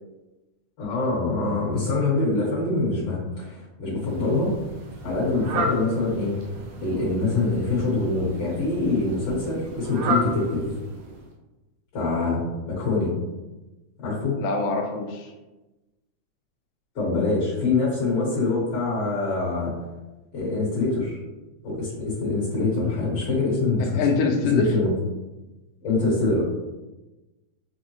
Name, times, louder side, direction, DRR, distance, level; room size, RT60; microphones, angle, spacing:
voice 1, 0.8-4.5 5.0-6.4 6.8-10.8 11.9-12.4 12.7-13.1 14.0-14.3 17.0-19.7 20.3-21.2 21.6-24.0 24.5-24.9 25.8-26.4, left 3 dB, 60° left, -7 dB, 2.1 m, -24 dB
Fowl, 4.0-11.3, right 1 dB, 85° right, 2.1 m, -33 dB
voice 2, 14.4-15.3 23.8-24.7, left 4 dB, 80° left, 2 dB, 1.8 m, -24 dB
5.9 x 2.0 x 3.0 m, 1.1 s
omnidirectional pair, 3.6 m